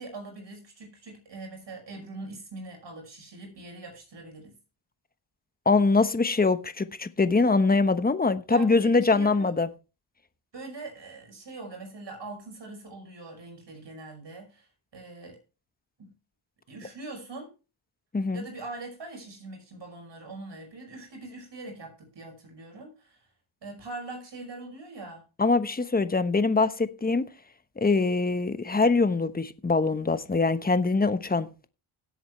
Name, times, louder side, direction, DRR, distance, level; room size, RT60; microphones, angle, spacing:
voice 1, 0.0-4.5 8.5-9.6 10.5-15.4 16.0-16.1 16.7-17.5 18.3-23.3 23.6-25.2, right 2 dB, 55° right, 5.8 m, -42 dB
voice 2, 5.6-9.7 18.1-18.4 25.4-27.2 27.8-31.5, left 3 dB, 20° left, 1.1 m, -23 dB
17.5 x 8.0 x 3.2 m
cardioid pair, 75°, 50 cm